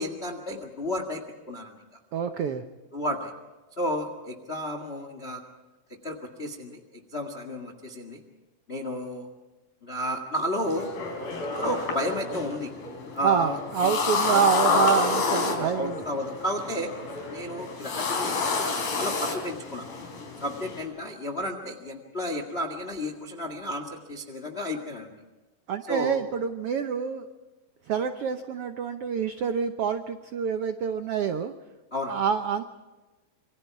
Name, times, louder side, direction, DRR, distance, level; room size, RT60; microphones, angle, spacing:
voice 1, 0.0-1.8 2.9-3.3 3.8-5.4 5.9-8.2 8.7-9.3 9.8-10.9 11.5-12.7 13.1-14.0 14.3-15.2 15.6-16.9 17.3-18.6 19.0-19.9 20.4-25.1 25.9-26.2 31.9-32.2, left 1 dB, 25° left, 6 dB, 1.4 m, -32 dB
voice 2, 2.1-2.6 13.2-16.0 25.7-27.2 27.9-31.5 32.1-32.6, right 7 dB, 90° right, 8 dB, 1.2 m, -27 dB
sound 1, 10.7-20.8, left 4 dB, 85° left, 5.8 m, -29 dB
27.5 x 23.5 x 4.7 m, 1.1 s
omnidirectional pair, 4.0 m